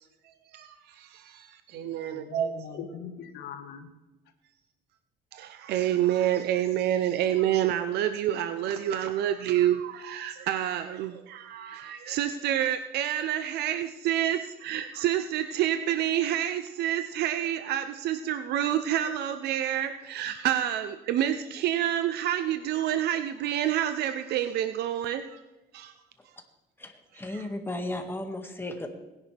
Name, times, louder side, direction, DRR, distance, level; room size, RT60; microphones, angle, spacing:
voice 1, 0.5-2.8 5.3-25.4 25.7-25.9 27.3-27.5, right 11 dB, 75° right, 0.7 m, -28 dB
voice 2, 1.7-3.9, left 7 dB, 80° left, 1.6 m, -41 dB
voice 3, 26.8-28.9, left 1 dB, 15° left, 1.8 m, -35 dB
19.0 x 10.5 x 3.4 m
cardioid pair, 110°, 17 cm